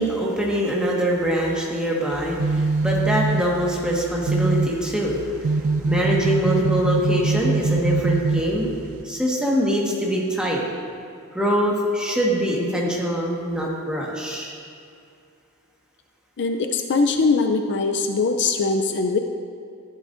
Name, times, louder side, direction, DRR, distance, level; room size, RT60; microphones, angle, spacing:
voice 1, 0.0-8.7 9.0-10.6 11.3-14.5, equal, 5° right, -4 dB, 1.5 m, -23 dB
sound 1, 2.1-9.0, right 3 dB, 65° right, 0.4 m, -24 dB
voice 2, 16.4-19.2, left 4 dB, 55° left, 6 dB, 0.5 m, -21 dB
14.0 x 11.5 x 2.6 m, 2.4 s
head